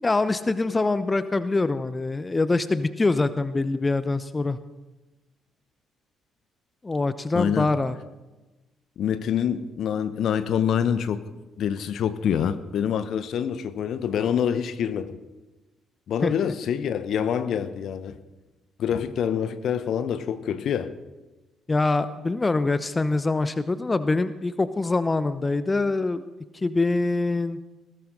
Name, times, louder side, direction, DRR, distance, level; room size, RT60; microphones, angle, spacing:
voice 1, 0.0-4.6 6.8-8.0 16.2-16.5 21.7-26.2 26.5-27.6, left 3 dB, 20° left, 13 dB, 0.8 m, -24 dB
voice 2, 7.3-7.7 9.0-11.2 11.6-15.2 16.1-18.2 18.8-20.9, left 8 dB, 55° left, 12 dB, 0.9 m, -26 dB
20.0 x 17.0 x 3.9 m, 1.1 s
figure-of-eight pair, 45°, 0 cm